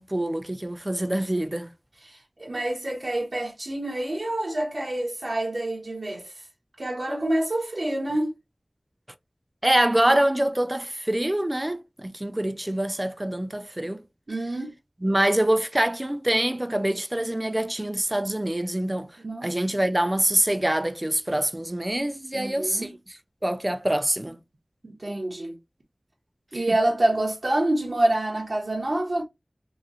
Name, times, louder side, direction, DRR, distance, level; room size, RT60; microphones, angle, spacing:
voice 1, 0.0-1.7 9.6-14.0 15.0-19.1 19.4-22.9 23.4-24.4 26.5-26.8, right 1 dB, 25° right, 0.4 m, -25 dB
voice 2, 2.0-6.4 6.8-8.3 14.3-14.7 19.2-19.5 22.3-22.9 24.8-25.6 26.5-29.2, right 1 dB, 80° right, 0.9 m, -27 dB
3.0 x 2.8 x 2.5 m
wide cardioid pair, 55°, 0 cm